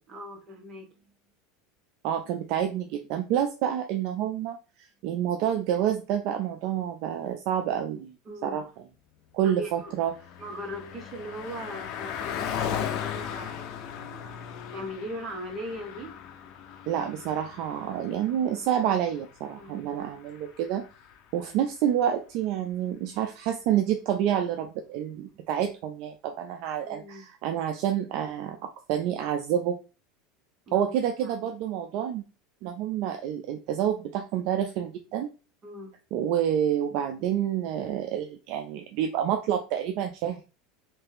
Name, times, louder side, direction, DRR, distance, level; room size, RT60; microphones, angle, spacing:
voice 1, 0.1-1.1 8.2-8.7 9.4-9.9 10.4-14.2 14.7-16.1 19.5-19.9 26.8-27.3 30.7-31.3 35.6-35.9, equal, 35° right, 2 dB, 1.3 m, -40 dB
voice 2, 2.0-4.6 5.0-8.1 8.4-8.6 9.3-10.1 16.9-20.8 21.3-29.8 30.7-32.2 32.6-35.3 36.1-40.4, right 10 dB, 60° right, 5 dB, 0.4 m, -28 dB
Car passing by, 9.6-21.3, left 8 dB, 55° left, 0.6 m, -38 dB
3.3 x 2.8 x 3.5 m, 0.33 s
supercardioid pair, 120°, 0 cm